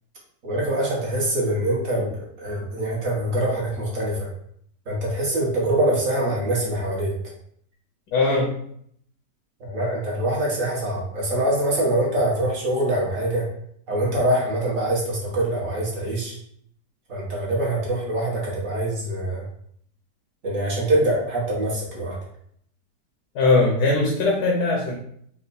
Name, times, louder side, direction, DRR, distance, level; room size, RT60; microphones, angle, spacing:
voice 1, 0.4-4.3 4.9-7.1 9.6-13.4 13.9-16.4 17.1-19.5 20.4-22.2, right 1 dB, 50° right, -4 dB, 1.6 m, -24 dB
voice 2, 8.1-8.5 23.3-25.0, left 3 dB, 75° left, -2 dB, 1.5 m, -20 dB
4.4 x 2.2 x 4.1 m, 0.67 s
omnidirectional pair, 1.9 m